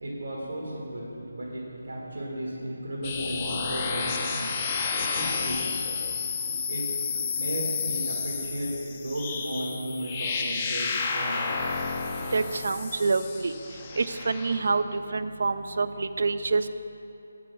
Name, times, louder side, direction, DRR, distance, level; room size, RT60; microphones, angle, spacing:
voice 1, 0.0-4.5 5.2-5.6 6.7-6.8 7.3-8.7 9.0-11.5, right 1 dB, 85° right, -6 dB, 1.8 m, -34 dB
sound 1, 3.0-14.7, left 5 dB, 20° left, 0.5 m, -31 dB
voice 2, 12.3-13.5 14.0-16.7, right 4 dB, 60° right, 12 dB, 0.4 m, -27 dB
8.2 x 6.0 x 6.1 m, 2.9 s
figure-of-eight pair, 170°, 0 cm